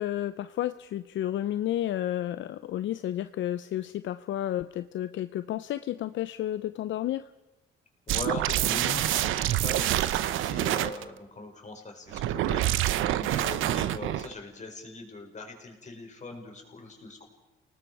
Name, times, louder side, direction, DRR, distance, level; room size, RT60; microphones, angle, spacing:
voice 1, 0.0-7.2, left 12 dB, 70° left, 12 dB, 0.6 m, -31 dB
voice 2, 8.1-17.3, left 3 dB, 35° left, 2 dB, 5.1 m, -41 dB
sound 1, 8.1-11.0 12.1-14.3, right 13 dB, 85° right, 0.8 m, -27 dB
30.0 x 19.0 x 4.7 m, 1.0 s
cardioid pair, 90°, 20 cm